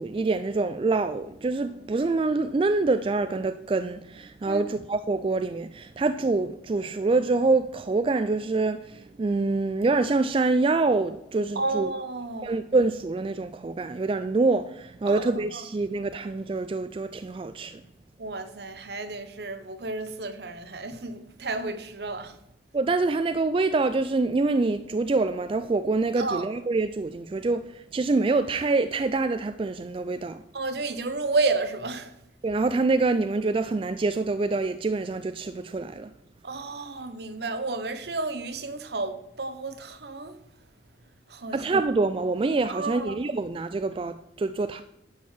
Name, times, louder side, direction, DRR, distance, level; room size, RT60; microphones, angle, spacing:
voice 1, 0.0-11.9 12.4-17.8 22.7-30.4 32.4-36.1 41.5-44.8, right 3 dB, 30° right, 0.3 m, -26 dB
voice 2, 11.5-12.6 15.1-15.2 15.5-15.6 18.2-22.4 26.2-26.5 30.5-32.1 36.4-40.4 41.3-41.6 42.7-43.1, right 3 dB, 60° right, 0.9 m, -31 dB
10.5 x 4.5 x 7.3 m
head